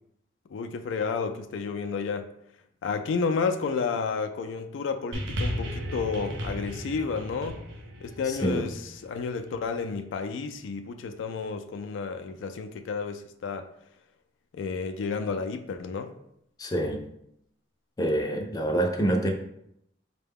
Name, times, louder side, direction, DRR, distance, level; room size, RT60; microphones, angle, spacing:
voice 1, 0.5-2.3 2.8-7.6 8.0-13.7 14.5-16.1, left 5 dB, 85° left, 8 dB, 0.3 m, -31 dB
sound 1, 5.1-9.7 10.5-10.6, equal, 85° right, 0.6 m, -35 dB
voice 2, 8.3-8.6 16.6-17.1 18.0-19.3, right 1 dB, 20° left, 2 dB, 0.4 m, -26 dB
4.5 x 2.2 x 3.5 m, 0.77 s
head